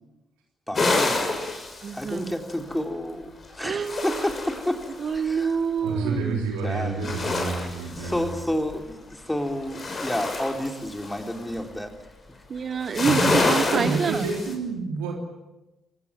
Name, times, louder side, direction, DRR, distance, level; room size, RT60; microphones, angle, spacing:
sound 1, 0.7-2.7 3.5-5.2 6.9-8.7 9.2-11.6 12.7-14.5, left 2 dB, 40° left, 6.6 m, -27 dB
voice 1, 0.7-1.4 1.9-4.8 5.1-5.5 6.6-7.4 8.0-11.9, left 1 dB, 10° left, 4 dB, 3.8 m, -30 dB
voice 2, 1.8-2.3 3.6-4.3 5.0-6.5 12.5-14.3, right 6 dB, 45° right, 15 dB, 1.3 m, -27 dB
voice 3, 5.8-8.3 13.7-15.1, right 4 dB, 70° right, 0 dB, 3.4 m, -29 dB
27.5 x 17.5 x 9.2 m, 1.0 s
figure-of-eight pair, 40°, 0 cm